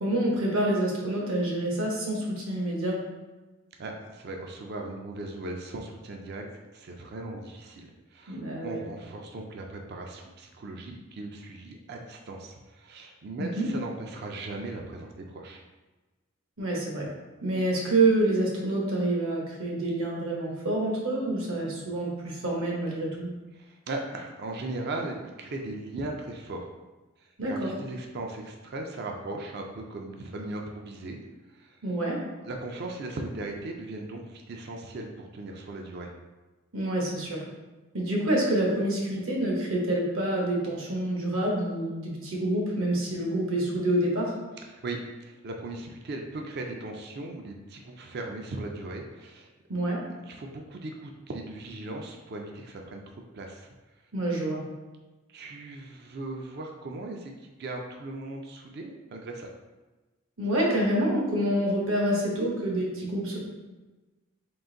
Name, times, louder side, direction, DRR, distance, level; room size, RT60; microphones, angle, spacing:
voice 1, 0.0-3.0 8.3-8.8 13.4-13.7 16.6-17.1 17.4-23.3 27.4-27.7 31.8-32.2 36.7-37.4 37.9-44.3 49.7-50.0 54.1-54.6 60.4-63.4, right 1 dB, 70° right, -2 dB, 1.0 m, -27 dB
voice 2, 3.8-6.4 6.7-15.6 23.5-26.7 27.2-31.2 31.5-31.8 32.4-36.1 44.7-49.5 50.1-53.0 53.3-53.7 55.3-59.5, right 2 dB, 50° right, 2 dB, 0.4 m, -38 dB
3.8 x 2.5 x 3.8 m, 1.2 s
head